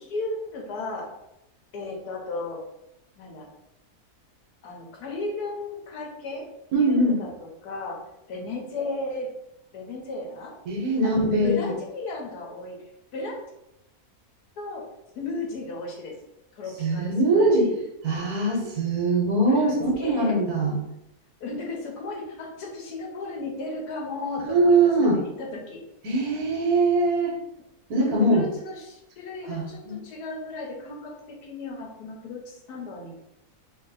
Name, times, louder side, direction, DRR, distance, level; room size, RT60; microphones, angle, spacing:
voice 1, 0.1-1.1 1.7-2.6 3.2-3.5 4.6-6.5 6.8-7.3 7.6-8.0 8.3-9.3 9.7-10.5 11.0-11.1 11.4-12.8 13.1-13.4 14.6-14.8 15.1-16.1 16.6-17.7 19.5-20.3 21.4-25.8 27.9-33.2, left 2 dB, 85° left, 0 dB, 1.4 m, -34 dB
voice 2, 6.7-7.2 10.7-11.7 16.8-17.7 18.0-20.8 24.4-25.2 26.0-27.3 27.9-28.4 29.5-30.0, right 2 dB, 75° right, 0 dB, 1.4 m, -22 dB
3.0 x 2.8 x 4.0 m, 0.85 s
omnidirectional pair, 1.6 m